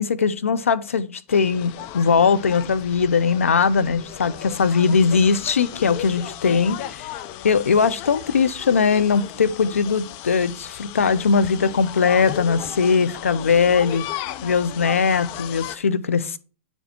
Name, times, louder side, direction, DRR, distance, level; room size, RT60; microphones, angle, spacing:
voice 1, 0.0-7.1 7.4-14.0 14.4-16.4, left 5 dB, 85° left, 0.6 m, -20 dB
sound 1, 1.3-15.8, left 12 dB, 45° left, 0.6 m, -36 dB
9.1 x 4.4 x 4.3 m
hypercardioid pair, 115°, 7 cm